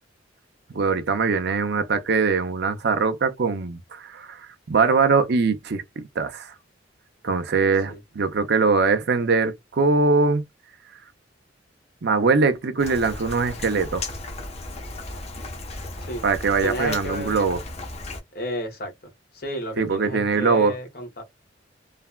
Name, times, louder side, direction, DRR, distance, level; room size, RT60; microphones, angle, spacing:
voice 1, 0.7-6.5 7.2-10.4 12.0-14.0 16.2-17.6 19.8-20.8, right 4 dB, 60° right, 0.6 m, -22 dB
Rain, 12.8-18.2, left 2 dB, 35° left, 0.9 m, -35 dB
voice 2, 16.6-17.6 18.3-18.9 19.3-21.2, equal, 55° left, 1.3 m, -31 dB
3.3 x 2.2 x 2.2 m
head